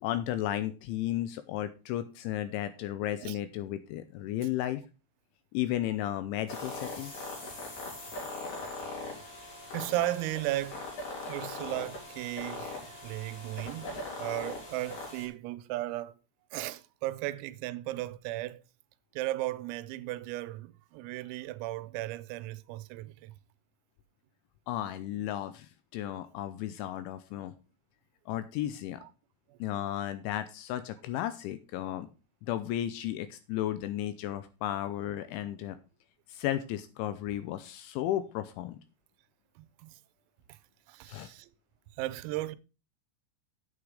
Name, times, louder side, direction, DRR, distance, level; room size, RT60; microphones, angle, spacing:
voice 1, 0.0-4.8 5.5-7.1 24.7-27.5 28.3-29.0 29.6-32.1 32.5-35.8 36.3-38.8 41.1-41.3, left 12 dB, 80° left, 2.8 m, -34 dB
sound 1, 6.5-15.3, left 2 dB, 45° left, 5.2 m, -40 dB
voice 2, 9.7-10.9 11.3-16.2 16.5-18.6 19.1-23.3 26.0-26.2 29.0-29.1 29.5-29.6 39.6-40.0 40.5-40.6 40.9-41.5 42.0-42.6, right 16 dB, 85° right, 3.4 m, -36 dB
8.8 x 8.5 x 4.9 m
omnidirectional pair, 6.0 m